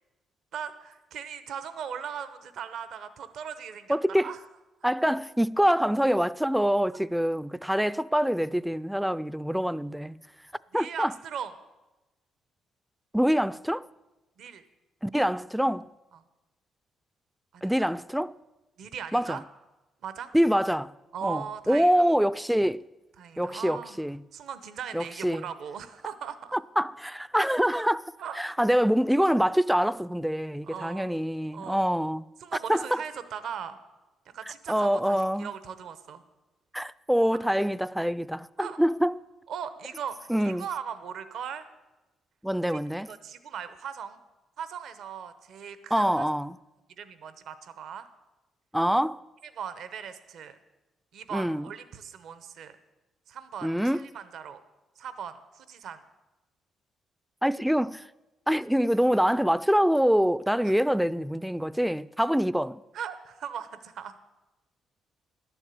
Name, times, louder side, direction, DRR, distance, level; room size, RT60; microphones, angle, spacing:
voice 1, 0.5-4.4 10.7-11.5 14.4-14.6 17.5-17.9 18.8-19.4 20.0-20.3 21.1-22.0 23.2-24.0 24.3-26.6 28.2-28.4 30.7-31.1 31.5-31.8 32.4-33.8 34.3-36.2 37.3-37.4 38.6-38.8 39.5-41.7 42.7-42.8 43.1-44.2 44.6-46.3 47.0-48.1 49.6-50.6 51.1-52.8 53.3-54.6 55.0-56.0 60.6-60.7 62.9-64.2, right 8 dB, 70° right, 0.8 m, -39 dB
voice 2, 3.9-4.3 4.8-10.2 10.7-11.1 13.1-13.9 15.0-15.9 17.6-18.3 19.1-19.4 20.3-20.9 21.2-22.9 23.4-24.2 24.9-25.4 26.5-32.3 32.7-33.0 34.7-35.5 36.7-39.2 40.3-40.7 42.4-43.1 45.9-46.6 48.7-49.2 51.3-51.7 53.6-54.1 57.4-58.0 58.5-62.8, equal, 5° right, 0.3 m, -25 dB
11.5 x 7.2 x 8.3 m
cardioid pair, 90°, 0 cm